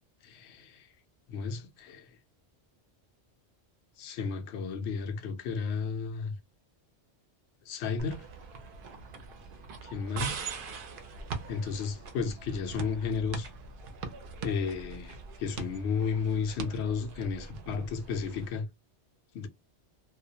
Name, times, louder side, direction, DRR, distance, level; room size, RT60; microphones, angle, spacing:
voice 1, 0.2-0.9 1.3-2.2 4.0-6.4 7.6-8.3 9.8-10.4 11.5-13.5 14.4-18.7 19.3-19.5, left 5 dB, 75° left, 0.8 m, -33 dB
sound 1, 8.0-18.5, right 4 dB, 60° right, 0.6 m, -42 dB
2.3 x 2.1 x 2.7 m
omnidirectional pair, 1.1 m